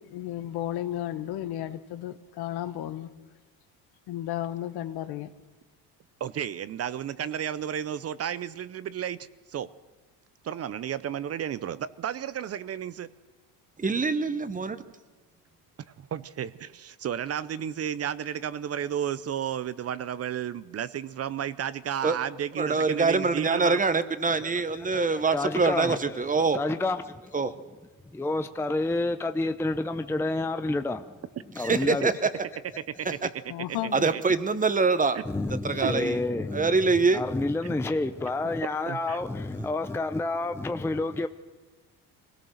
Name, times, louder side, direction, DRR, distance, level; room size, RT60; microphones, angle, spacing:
voice 1, 0.0-3.1 4.1-5.3 33.5-34.1, left 12 dB, 70° left, 1.4 m, -33 dB
voice 2, 6.2-9.7 10.4-13.1 16.0-23.8 33.0-33.1 34.0-34.2 35.1-35.2 35.8-36.1 38.9-39.2, right 9 dB, 35° right, 0.6 m, -32 dB
voice 3, 13.8-14.8 22.0-22.2 22.6-26.6 27.3-27.5 31.6-32.3 33.9-35.2 35.6-36.2 36.5-37.2, right 4 dB, 20° right, 1.0 m, -24 dB
voice 4, 24.3-27.6 28.1-31.0 31.5-32.1 35.3-36.8 37.1-41.3, left 2 dB, 5° left, 0.6 m, -29 dB
23.0 x 17.5 x 6.5 m
cardioid pair, 115°, 40 cm